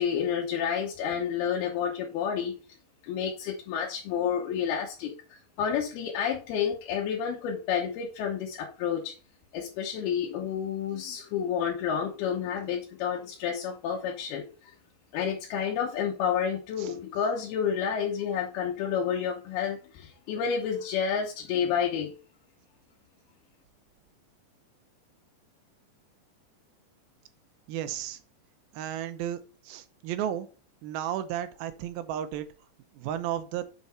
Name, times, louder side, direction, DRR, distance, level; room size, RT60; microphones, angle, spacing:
voice 1, 0.0-2.5 3.0-9.1 9.5-14.5 15.1-22.1, left 7 dB, 85° left, -1 dB, 3.0 m, -30 dB
voice 2, 27.7-28.2 28.7-29.4 29.7-30.5 30.8-32.5 32.9-33.7, right 11 dB, 80° right, 11 dB, 2.5 m, -33 dB
6.8 x 5.7 x 4.3 m, 0.36 s
omnidirectional pair, 4.3 m